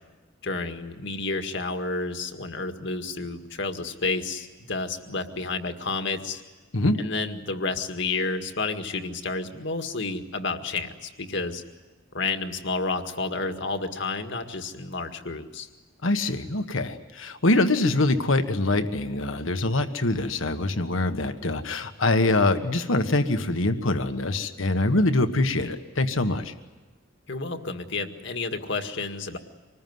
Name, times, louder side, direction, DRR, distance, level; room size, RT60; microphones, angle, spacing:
voice 1, 0.4-6.4 7.0-11.6 12.1-15.7 27.3-29.4, left 3 dB, 65° left, 6 dB, 1.9 m, -30 dB
voice 2, 16.0-26.5, left 2 dB, 80° left, 8 dB, 1.5 m, -24 dB
25.5 x 20.0 x 9.5 m, 1.3 s
head